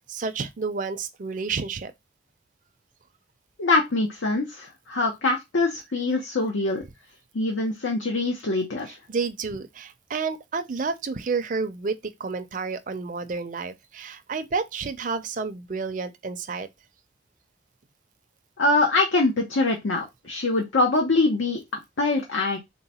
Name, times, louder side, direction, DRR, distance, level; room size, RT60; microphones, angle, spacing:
voice 1, 0.1-1.9 9.1-11.9 12.2-16.7, right 4 dB, 45° right, 0.4 m, -30 dB
voice 2, 3.6-6.8 7.3-9.0 18.6-22.6, left 2 dB, 90° left, 0.8 m, -24 dB
3.8 x 2.1 x 4.1 m
head